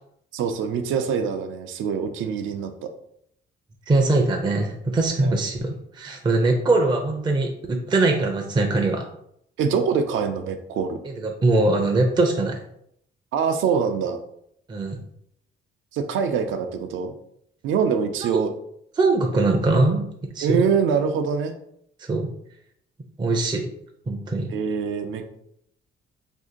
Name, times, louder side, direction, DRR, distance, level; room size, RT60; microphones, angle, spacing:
voice 1, 0.3-2.9 5.2-5.4 9.6-11.0 13.3-14.2 15.9-17.1 17.6-18.5 20.4-21.5 24.5-25.4, right 6 dB, 80° right, 7 dB, 0.5 m, -24 dB
voice 2, 3.9-9.1 11.0-12.6 14.7-15.0 18.2-18.3 19.0-20.1 20.3-20.6 22.1-22.3 23.2-23.7 24.1-24.5, right 2 dB, 20° right, 3 dB, 0.4 m, -22 dB
2.6 x 2.5 x 3.7 m, 0.72 s
cardioid pair, 90°, 20 cm